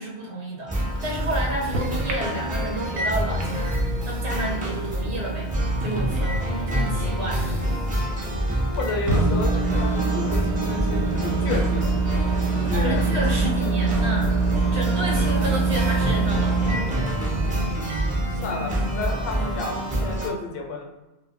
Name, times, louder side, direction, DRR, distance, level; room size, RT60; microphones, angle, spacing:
voice 1, 0.0-5.5 5.8-7.4 12.7-14.4 14.7-17.1, right 1 dB, 35° right, -3 dB, 0.7 m, -31 dB
sound 1, 0.7-20.3, right 1 dB, 15° right, 0.3 m, -27 dB
Microwave oven, 0.9-20.2, right 4 dB, 70° right, 0.8 m, -27 dB
voice 2, 8.7-12.0 12.5-13.0 13.3-13.5 17.3-17.6 18.1-20.8, left 3 dB, 70° left, 2 dB, 0.8 m, -32 dB
2.1 x 2.1 x 3.6 m, 1.1 s
omnidirectional pair, 1.1 m